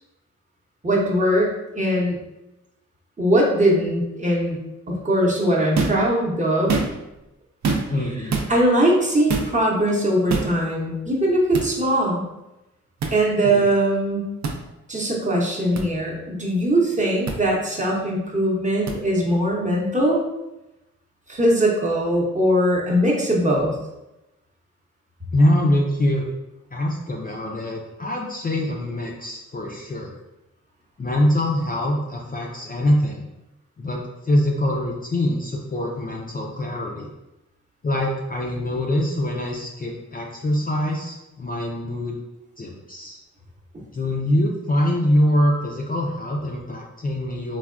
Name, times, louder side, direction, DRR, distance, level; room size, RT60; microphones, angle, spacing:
voice 1, 0.8-2.2 3.2-4.6 4.9-6.8 8.5-12.2 13.1-14.3 14.9-20.3 21.3-23.7 43.7-43.8, right 1 dB, 25° right, -3 dB, 0.7 m, -21 dB
sound 1, 5.7-6.1 6.6-7.1 7.6-8.0 8.3-8.5 9.3-9.5 10.3-10.5 11.5-11.7 13.0-13.2 14.4-14.6 15.8-15.9 17.3-17.4 18.9-19.0, right 4 dB, 65° right, 0.5 m, -24 dB
voice 2, 7.9-8.4 13.4-13.6 25.3-26.2 26.7-30.2 31.0-33.2 33.8-37.1 37.8-42.1 42.6-43.2 43.9-47.6, left 1 dB, 30° left, -1 dB, 0.4 m, -24 dB
3.3 x 2.2 x 2.4 m, 0.94 s
cardioid pair, 65°, 31 cm